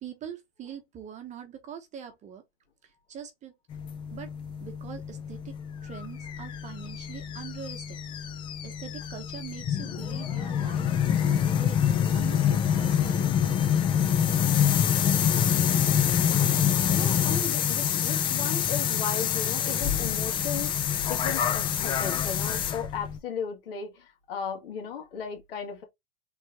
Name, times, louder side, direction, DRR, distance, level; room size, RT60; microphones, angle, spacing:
voice 1, 0.0-2.4 2.8-3.5 4.1-4.3 4.6-5.5 5.8-8.0 8.6-13.7, right 8 dB, 25° right, 0.9 m, -43 dB
sound 1, 3.7-23.2, left 9 dB, 15° left, 0.3 m, -26 dB
voice 2, 16.9-20.7 21.0-25.8, left 7 dB, 65° left, 2.1 m, -36 dB
4.4 x 3.4 x 2.8 m
supercardioid pair, 140°, 30 cm